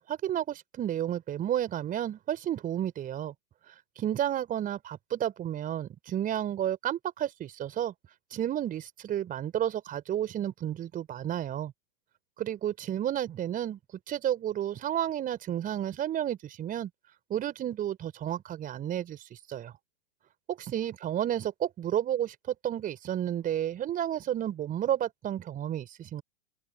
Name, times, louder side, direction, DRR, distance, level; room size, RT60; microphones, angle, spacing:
voice 1, 0.0-3.3 4.0-7.9 8.3-11.7 12.4-13.8 14.1-16.9 17.3-19.7 20.5-26.2, right 11 dB, 25° right, 4.6 m, -31 dB
open air
figure-of-eight pair, 100°, 32 cm